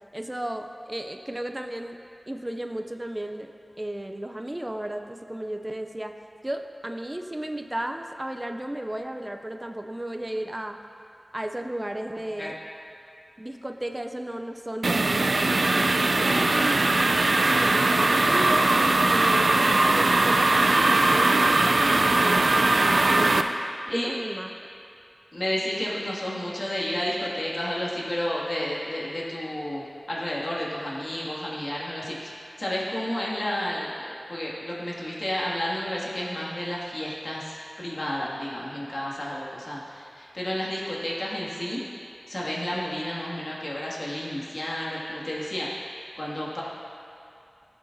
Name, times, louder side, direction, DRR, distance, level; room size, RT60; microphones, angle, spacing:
voice 1, 0.1-2.0 2.3-3.5 3.8-6.1 6.4-10.8 11.3-12.6 13.4-18.8 19.1-23.5 23.9-24.5, right 1 dB, 25° right, 5 dB, 0.4 m, -34 dB
sound 1, 14.8-23.4, right 2 dB, 85° right, 0.4 m, -20 dB
voice 2, 16.2-16.6 23.9-24.1 25.3-32.3 32.6-33.9 34.3-41.8 42.3-45.7 46.2-46.6, left 1 dB, 60° left, -6 dB, 2.1 m, -31 dB
15.0 x 8.3 x 2.7 m, 2.6 s
wide cardioid pair, 50°, 0 cm